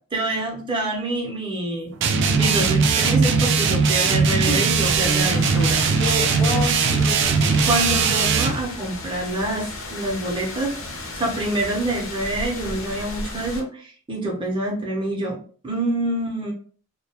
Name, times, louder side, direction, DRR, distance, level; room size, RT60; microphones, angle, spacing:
voice 1, 0.1-1.9 2.4-5.8 7.6-15.4 15.6-16.5, right 1 dB, 20° right, -1 dB, 0.6 m, -26 dB
sound 1, 2.0-8.6, right 5 dB, 55° right, 0.3 m, -19 dB
voice 2, 4.4-4.9 6.0-7.6, left 2 dB, 20° left, -1 dB, 0.4 m, -30 dB
sound 2, 4.7-13.6, left 2 dB, 60° left, 0.6 m, -34 dB
2.3 x 2.2 x 2.8 m, 0.43 s
head